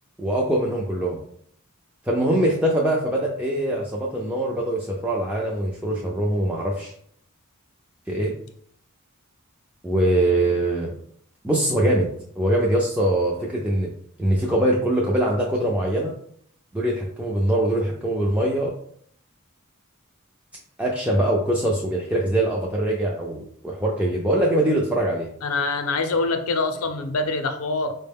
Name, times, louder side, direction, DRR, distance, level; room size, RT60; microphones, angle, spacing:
voice 1, 0.2-1.2 2.1-6.9 8.1-8.3 9.8-10.9 11.4-12.1 12.4-13.9 14.2-16.1 16.7-18.7 20.8-25.3, right 1 dB, 5° right, -3 dB, 0.3 m, -23 dB
voice 2, 25.4-28.0, left 3 dB, 75° left, 7 dB, 0.5 m, -25 dB
4.5 x 2.1 x 3.4 m, 0.64 s
head